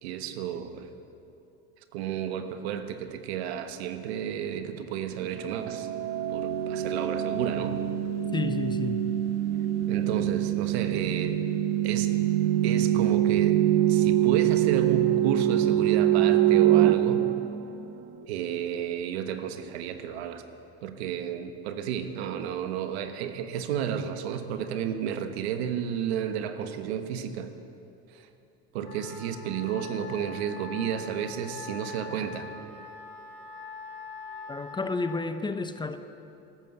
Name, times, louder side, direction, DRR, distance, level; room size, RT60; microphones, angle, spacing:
voice 1, 0.0-0.9 1.9-5.9 6.3-7.8 9.9-11.4 11.8-12.1 12.6-13.6 13.9-17.3 18.3-20.4 20.8-27.5 28.1-28.2 28.7-32.5, right 8 dB, 85° right, 1.3 m, -32 dB
sound 1, 5.5-18.2, right 12 dB, 50° right, 1.0 m, -24 dB
voice 2, 8.3-9.0 34.5-36.0, left 3 dB, 15° left, 0.8 m, -31 dB
Wind instrument woodwind instrument, 28.8-35.2, left 4 dB, 85° left, 4.6 m, -43 dB
13.5 x 13.0 x 7.9 m
supercardioid pair, 105°, 31 cm